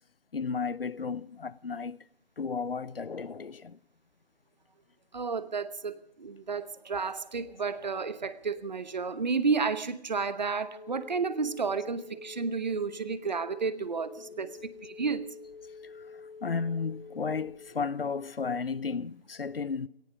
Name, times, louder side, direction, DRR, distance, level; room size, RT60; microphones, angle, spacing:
voice 1, 0.3-2.0 2.4-3.8 16.4-19.9, left 5 dB, 65° left, 0.7 m, -33 dB
voice 2, 5.1-15.3, right 5 dB, 45° right, 1.1 m, -31 dB
sound 1, 10.6-17.6, left 5 dB, 50° left, 7.4 m, -47 dB
18.0 x 14.5 x 5.1 m
figure-of-eight pair, 160°, 31 cm